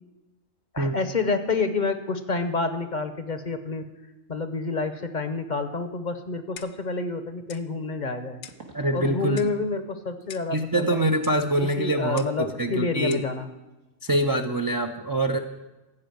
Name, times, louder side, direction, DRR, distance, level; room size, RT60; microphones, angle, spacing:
voice 1, 0.7-3.8 4.3-8.4 8.9-11.0 11.8-13.5, left 4 dB, 45° left, 9 dB, 0.8 m, -28 dB
Clock, 6.6-6.9 7.5-7.7 8.4-8.7 9.4-9.6 10.3-10.6 11.2-11.4 12.2-12.4 13.1-13.3, left 9 dB, 70° left, 0.9 m, -44 dB
sound 1, 7.0-7.1 8.5-9.3 9.6-9.9 10.2-10.4 13.3-13.4 13.7-13.9 14.2-14.3, right 4 dB, 85° right, 2.0 m, -47 dB
voice 2, 8.7-9.4 10.5-13.2 14.0-15.4, right 1 dB, 35° right, 4 dB, 0.3 m, -24 dB
15.0 x 5.0 x 9.2 m, 1.1 s
omnidirectional pair, 1.3 m